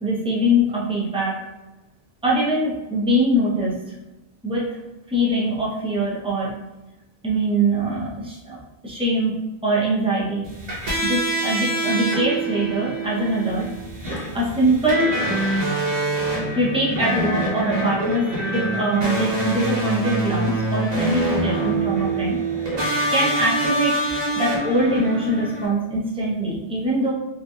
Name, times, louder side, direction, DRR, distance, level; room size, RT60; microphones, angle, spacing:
voice 1, 0.0-1.4 2.2-3.8 4.4-4.8 5.1-6.5 7.2-8.6 8.8-9.4 9.6-10.4 11.0-13.7 14.0-15.2 16.5-18.3 18.5-22.4 23.1-27.1, right 1 dB, 5° right, -6 dB, 0.5 m, -23 dB
sound 1, 10.4-25.7, right 1 dB, 65° right, 1.1 m, -25 dB
2.8 x 2.5 x 2.3 m, 1.0 s
omnidirectional pair, 1.1 m